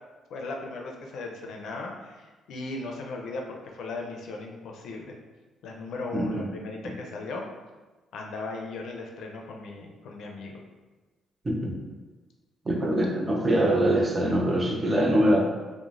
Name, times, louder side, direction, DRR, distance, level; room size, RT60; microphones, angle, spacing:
voice 1, 0.3-5.2 5.6-7.4 8.1-10.6, left 3 dB, 75° left, 1 dB, 0.4 m, -37 dB
voice 2, 6.1-6.5 11.4-11.8 12.7-15.4, right 1 dB, 30° right, -1 dB, 0.6 m, -23 dB
3.0 x 2.1 x 2.5 m, 1.3 s
cardioid pair, 90°, 0 cm